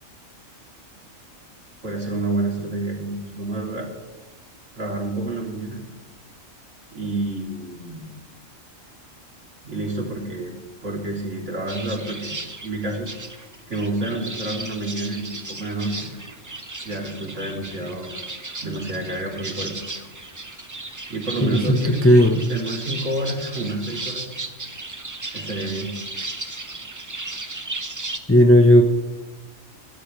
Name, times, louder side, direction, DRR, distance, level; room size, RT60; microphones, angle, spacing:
voice 1, 1.8-3.9 4.8-5.8 6.9-8.1 9.6-10.5 10.8-12.3 12.6-13.1 13.7-16.1 16.8-18.2 18.6-19.7 21.1-22.0 22.5-24.3 25.3-25.9, right 2 dB, 65° right, -1 dB, 3.7 m, -29 dB
sound 1, 11.7-28.2, right 2 dB, 15° right, 0.7 m, -35 dB
voice 2, 21.4-22.5 28.3-28.8, equal, 10° left, 4 dB, 1.0 m, -14 dB
27.0 x 12.5 x 3.3 m, 1.2 s
omnidirectional pair, 1.4 m